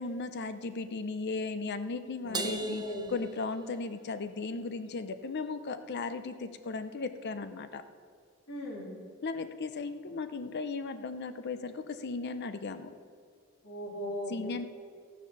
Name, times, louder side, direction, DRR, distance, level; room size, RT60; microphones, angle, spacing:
voice 1, 0.0-2.8 3.1-7.8 9.2-12.9 14.3-14.7, left 3 dB, 55° left, 10 dB, 0.6 m, -36 dB
voice 2, 2.2-3.1 8.5-8.9 13.6-14.4, equal, 80° left, -6 dB, 3.4 m, -37 dB
Crash cymbal, 2.3-4.1, right 3 dB, 20° right, 0.6 m, -39 dB
15.5 x 7.1 x 6.0 m, 2.1 s
head